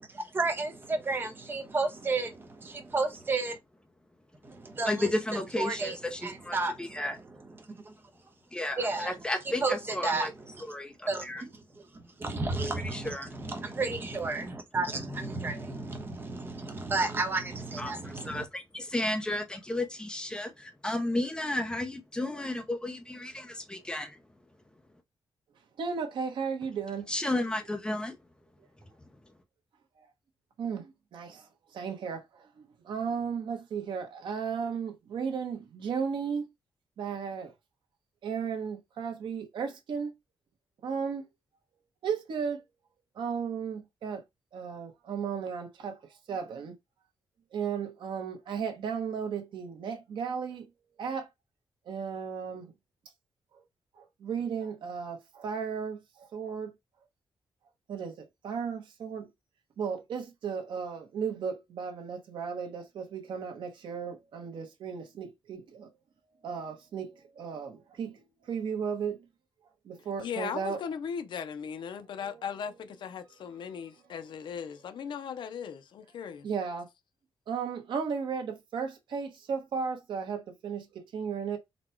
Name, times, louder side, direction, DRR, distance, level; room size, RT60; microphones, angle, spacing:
voice 1, 0.1-3.6 4.4-5.1 5.6-6.0 6.2-7.0 7.7-7.9 8.8-9.2 9.6-9.8 10.0-10.3 10.5-10.6 11.1-11.5 12.2-18.4, right 3 dB, 25° right, 0.9 m, -32 dB
voice 2, 4.8-7.2 8.5-10.3 10.6-11.4 12.8-13.3 17.8-24.2 27.1-28.2, left 1 dB, 10° left, 0.7 m, -33 dB
voice 3, 25.8-27.1 30.0-30.1 30.6-36.5 37.0-37.5 38.2-40.1 40.8-41.2 42.0-42.6 43.1-44.2 44.5-46.0 46.3-46.8 47.5-50.7 51.0-51.3 51.9-52.7 53.5-53.6 54.0-56.7 57.9-59.3 59.8-65.9 66.4-69.2 69.8-70.8 72.1-72.4 76.4-76.9 77.5-81.6, right 6 dB, 70° right, 1.0 m, -35 dB
voice 4, 70.2-76.5, left 7 dB, 70° left, 0.5 m, -38 dB
4.1 x 2.2 x 4.4 m
wide cardioid pair, 160°, 8 cm